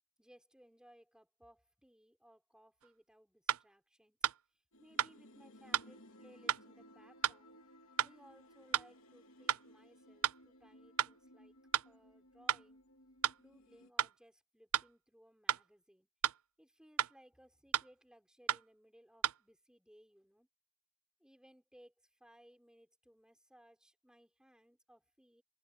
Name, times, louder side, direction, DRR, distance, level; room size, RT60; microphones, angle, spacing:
voice 1, 0.2-4.2 4.5-7.6 8.0-11.6 11.8-12.8 13.4-16.1 16.6-20.5 21.2-25.4, equal, 5° right, 6.1 m, -64 dB
sound 1, 2.8-2.9 3.5-3.6 4.2-4.4 5.0-5.1 5.7-5.9 6.5-6.6 7.2-7.4 8.0-8.1 8.7-8.9 9.5-9.6 10.2-10.4 11.0-11.1 11.7-11.9 12.5-12.6 13.2-13.4 14.0-14.1 14.7-14.9 15.5-15.6 16.2-16.4 17.0-17.1 17.7-17.9 18.5-18.6 19.2-19.4, right 10 dB, 85° right, 0.6 m, -32 dB
sound 2, 4.7-13.9, equal, 70° left, 3.1 m, -60 dB
head